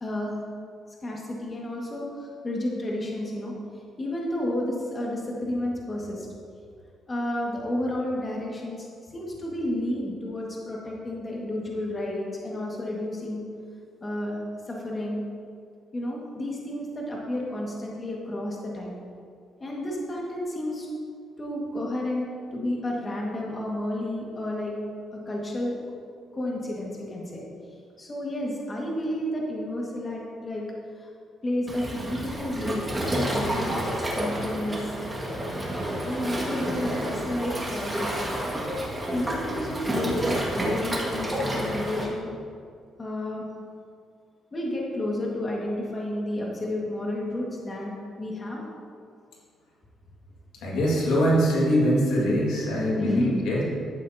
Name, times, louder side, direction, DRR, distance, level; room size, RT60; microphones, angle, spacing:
voice 1, 0.0-0.4 1.0-3.5 4.0-6.3 7.1-8.9 9.1-13.4 14.0-14.4 14.7-15.2 15.9-19.0 19.6-20.9 21.4-24.8 25.1-25.8 26.3-27.4 28.0-30.7 31.0-31.1 31.4-33.8 34.1-34.9 36.0-38.2 39.1-42.3 43.0-43.5 44.5-48.6 53.0-53.4, left 1 dB, 30° left, -3 dB, 1.8 m, -31 dB
Waves surf, 31.7-42.0, right 1 dB, 20° right, 1.9 m, -29 dB
voice 2, 50.6-53.6, equal, 85° left, -4 dB, 2.0 m, -23 dB
12.0 x 8.3 x 2.8 m, 2.3 s
cardioid pair, 90°, 0 cm